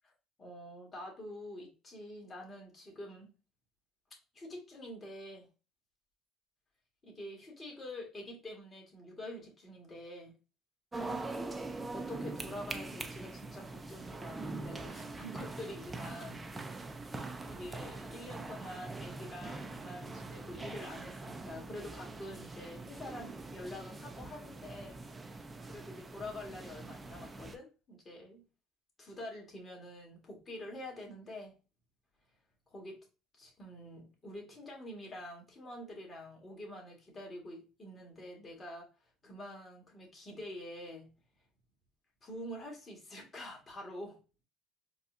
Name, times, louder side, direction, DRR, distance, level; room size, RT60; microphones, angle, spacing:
voice 1, 0.4-3.3 4.3-5.5 7.0-10.4 11.9-16.5 17.4-25.0 25.7-28.4 29.0-31.6 32.7-33.1 33.3-38.9 39.2-41.1 42.2-44.2, left 1 dB, 30° left, -1 dB, 1.7 m, -46 dB
sound 1, 10.9-27.6, right 3 dB, 20° right, 0.5 m, -43 dB
4.1 x 2.3 x 2.6 m, 0.33 s
supercardioid pair, 90°, 0 cm